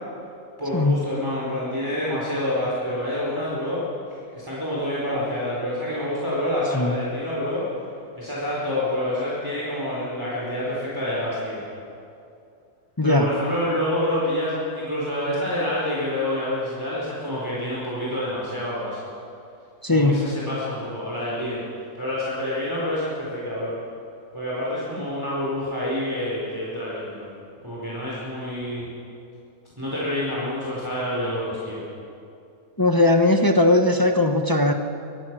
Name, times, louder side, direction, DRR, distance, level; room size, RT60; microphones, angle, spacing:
voice 1, 0.6-3.8 4.3-7.6 8.2-11.6 13.0-19.0 19.9-21.6 22.0-23.7 24.3-27.3 27.6-28.8 29.8-31.8, left 1 dB, 15° right, -7 dB, 4.5 m, -27 dB
voice 2, 13.0-13.3 19.8-20.3 32.8-34.7, left 2 dB, 15° left, 4 dB, 1.0 m, -19 dB
25.0 x 20.0 x 6.2 m, 2.5 s
omnidirectional pair, 1.6 m